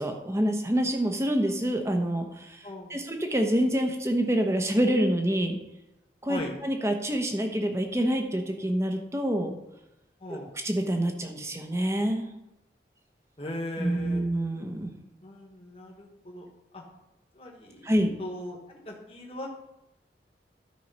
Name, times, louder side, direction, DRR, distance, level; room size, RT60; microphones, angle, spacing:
voice 1, 0.0-5.6 6.2-9.6 10.3-10.4 10.6-12.3 13.8-14.9 17.8-18.1, right 1 dB, 15° right, 4 dB, 1.0 m, -27 dB
voice 2, 2.6-3.0 6.3-6.5 10.2-10.5 13.4-14.2 15.2-16.5 16.7-16.8 17.3-17.9 18.2-19.6, left 1 dB, 35° left, 0 dB, 1.4 m, -39 dB
12.5 x 4.7 x 5.5 m, 0.93 s
head